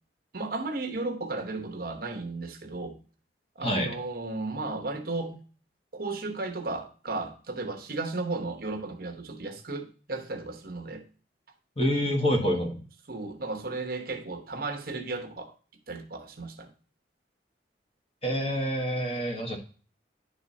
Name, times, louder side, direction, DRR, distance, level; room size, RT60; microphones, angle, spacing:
voice 1, 0.3-3.0 3.6-5.4 5.9-11.0 13.1-15.5 15.9-16.7, right 3 dB, 50° right, 1.0 m, -34 dB
voice 2, 3.6-3.9 11.8-12.8 18.2-19.6, equal, 35° left, 1.4 m, -27 dB
10.5 x 3.5 x 4.1 m
head